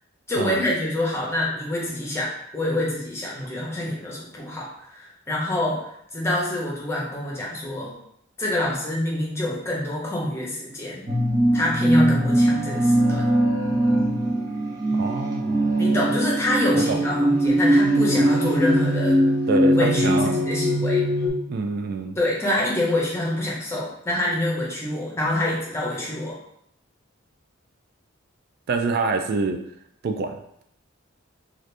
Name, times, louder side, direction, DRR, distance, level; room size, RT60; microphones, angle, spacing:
voice 1, 0.3-7.9 8.4-11.1 11.5-13.3 15.8-19.2 19.7-21.0 22.2-26.4, left 1 dB, 15° left, -4 dB, 0.8 m, -26 dB
sound 1, 11.1-21.3, right 1 dB, 20° right, 0.8 m, -21 dB
voice 2, 14.9-15.8 16.7-17.0 19.5-20.3 21.5-22.2 28.7-29.6 30.0-30.4, right 3 dB, 50° right, 5 dB, 0.3 m, -26 dB
2.8 x 2.5 x 3.3 m, 0.72 s
head